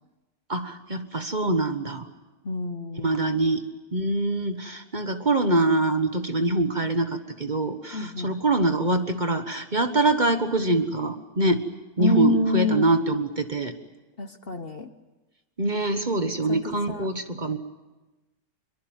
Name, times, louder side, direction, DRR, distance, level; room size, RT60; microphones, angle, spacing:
voice 1, 0.5-2.1 3.0-3.6 3.9-11.6 12.0-13.7 15.6-17.6, right 2 dB, 30° right, 7 dB, 1.5 m, -24 dB
voice 2, 2.4-3.4 7.9-8.3 12.0-12.9 14.2-14.9 16.5-17.1, left 2 dB, 45° left, 9 dB, 1.2 m, -27 dB
25.0 x 23.0 x 9.0 m, 1.1 s
omnidirectional pair, 1.6 m